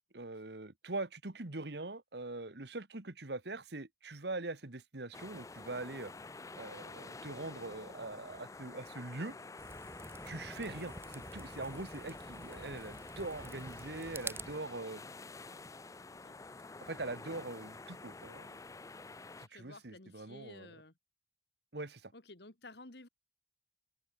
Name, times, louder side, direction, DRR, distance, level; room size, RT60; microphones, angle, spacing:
voice 1, 0.0-6.1 6.6-9.4 10.2-15.0 16.8-18.6 19.4-20.7 21.7-22.1, right 2 dB, 60° right, 1.5 m, -43 dB
sound 1, 5.1-19.5, left 3 dB, 15° left, 0.5 m, -49 dB
sound 2, 9.6-14.6, right 2 dB, 15° right, 1.4 m, -48 dB
voice 2, 19.5-20.9 22.1-23.1, left 2 dB, 60° left, 2.4 m, -54 dB
head